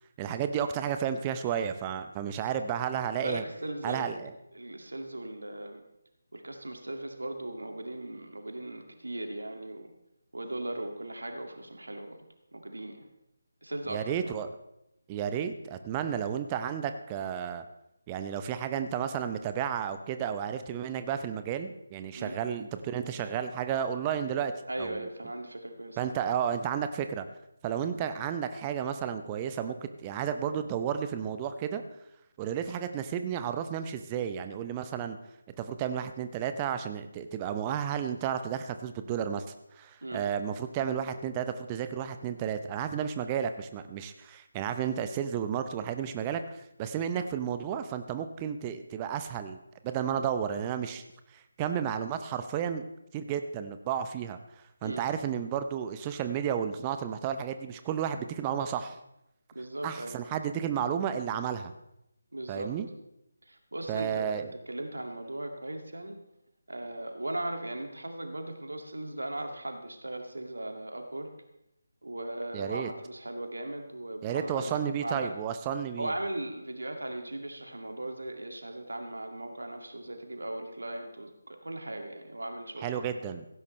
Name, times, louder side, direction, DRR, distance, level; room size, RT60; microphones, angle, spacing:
voice 1, 0.2-3.4 3.8-4.3 13.9-14.5 15.1-17.6 18.1-24.5 24.8-25.1 26.0-27.3 27.6-31.8 32.4-35.2 35.5-39.5 39.8-49.6 49.8-51.0 51.3-52.8 53.1-54.4 54.8-59.0 59.8-61.7 62.5-62.9 63.9-64.5 72.5-72.9 74.2-76.1 82.8-83.4, right 8 dB, 15° right, 9 dB, 0.7 m, -32 dB
voice 2, 3.1-4.1 4.5-5.8 6.3-9.9 10.3-12.2 12.5-13.1 13.6-14.3 22.1-22.4 24.7-26.1 40.0-40.3 54.8-55.1 59.5-60.2 62.3-62.7 63.5-64.4 64.7-66.2 66.7-71.3 72.0-75.4 76.0-83.0, right 1 dB, 70° right, 5 dB, 2.2 m, -38 dB
16.5 x 15.5 x 3.2 m, 0.84 s
figure-of-eight pair, 155°, 0 cm